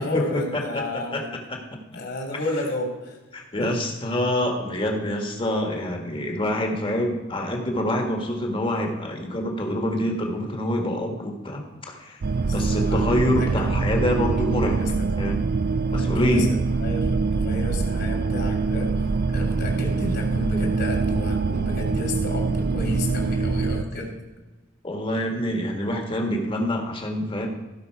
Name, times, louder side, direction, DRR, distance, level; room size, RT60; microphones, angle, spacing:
voice 1, 0.0-1.3 1.9-3.2 3.6-3.7 4.4-4.5 12.3-13.5 14.7-15.1 15.9-24.2, left 1 dB, 60° left, 1 dB, 3.0 m, -32 dB
voice 2, 0.5-1.6 3.3-12.2 12.5-14.8 15.2-15.4 15.9-16.5 24.8-27.5, left 1 dB, 25° left, 2 dB, 1.7 m, -26 dB
sound 1, 12.2-23.8, right 4 dB, 50° right, 0.4 m, -24 dB
16.0 x 5.7 x 4.7 m, 1.1 s
head